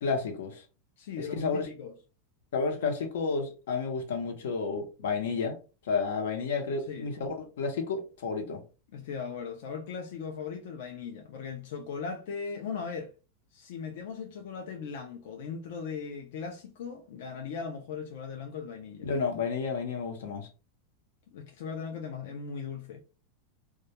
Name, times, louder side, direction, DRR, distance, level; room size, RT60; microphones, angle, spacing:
voice 1, 0.0-0.6 1.2-1.7 2.5-5.6 5.8-8.6 19.0-20.5, left 4 dB, 90° left, 0.8 m, -31 dB
voice 2, 1.0-1.9 6.9-7.1 8.9-13.1 13.5-19.1 21.3-23.0, left 6 dB, 65° left, 0.4 m, -38 dB
2.2 x 2.2 x 2.8 m
supercardioid pair, 170°, 0 cm